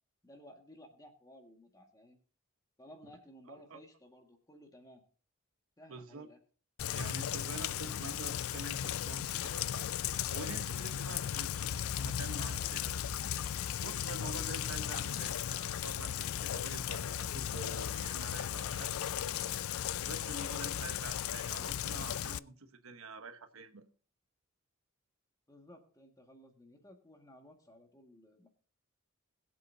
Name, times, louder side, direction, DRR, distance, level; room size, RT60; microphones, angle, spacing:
voice 1, 0.2-2.2 2.8-5.0 5.8-6.4 25.5-28.5, equal, 15° left, 1.8 m, -57 dB
voice 2, 3.5-3.8 5.9-6.3 6.9-9.9 10.3-13.0 13.8-18.9 20.0-23.8, right 3 dB, 85° right, 1.2 m, -47 dB
Rain, 6.8-22.4, left 10 dB, 80° left, 0.4 m, -36 dB
21.5 x 7.9 x 2.7 m
head